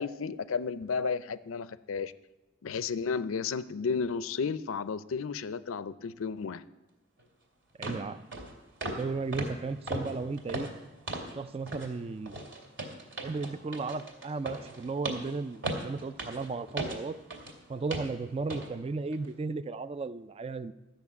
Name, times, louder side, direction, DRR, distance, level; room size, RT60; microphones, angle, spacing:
voice 1, 0.0-2.1 2.6-6.6, left 5 dB, 85° left, 15 dB, 0.5 m, -33 dB
sound 1, 7.2-7.3 7.8-8.0 8.3-8.5 8.8-9.1 9.3-11.4 11.7-11.9 12.3-17.6 17.9-18.1 18.5-18.7 19.1-19.3, right 2 dB, 60° right, 2.3 m, -37 dB
voice 2, 7.8-8.2 8.9-10.7 11.3-12.4 13.2-17.2 17.7-20.7, right 3 dB, 30° right, 14 dB, 0.3 m, -35 dB
13.0 x 6.4 x 8.3 m, 1.1 s
head